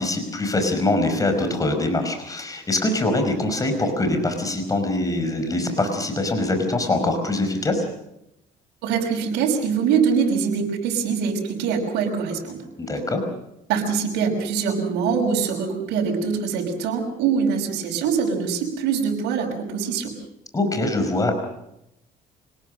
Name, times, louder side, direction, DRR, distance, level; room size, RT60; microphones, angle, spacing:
voice 1, 0.0-7.8 12.8-13.2 20.5-21.4, left 2 dB, 20° left, 6 dB, 5.2 m, -23 dB
voice 2, 8.8-12.6 13.7-20.1, right 6 dB, 90° right, 0 dB, 5.5 m, -23 dB
26.0 x 19.5 x 6.5 m, 0.84 s
cardioid pair, 110°, 17 cm